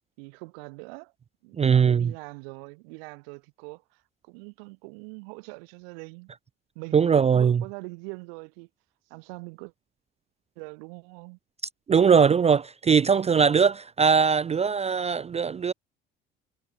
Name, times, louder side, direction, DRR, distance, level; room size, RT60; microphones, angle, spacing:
voice 1, 0.2-1.1 1.4-6.3 6.7-8.7 9.1-9.7 10.6-11.4, right 33 dB, 75° right, 1.3 m, -43 dB
voice 2, 1.6-2.1 6.9-7.6 11.9-15.7, right 6 dB, 20° right, 0.4 m, -20 dB
hypercardioid pair, 65°, 29 cm